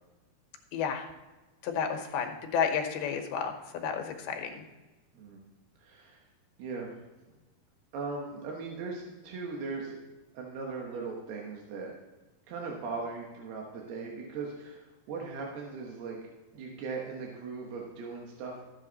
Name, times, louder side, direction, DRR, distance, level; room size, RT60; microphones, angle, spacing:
voice 1, 0.7-1.1 1.6-4.6, left 7 dB, 75° left, 4 dB, 2.9 m, -31 dB
voice 2, 5.8-6.2 6.6-7.0 7.9-10.0 10.3-11.9 12.5-16.2 16.5-18.6, right 4 dB, 75° right, -1 dB, 3.3 m, -39 dB
13.5 x 8.3 x 4.0 m, 1.2 s
omnidirectional pair, 4.7 m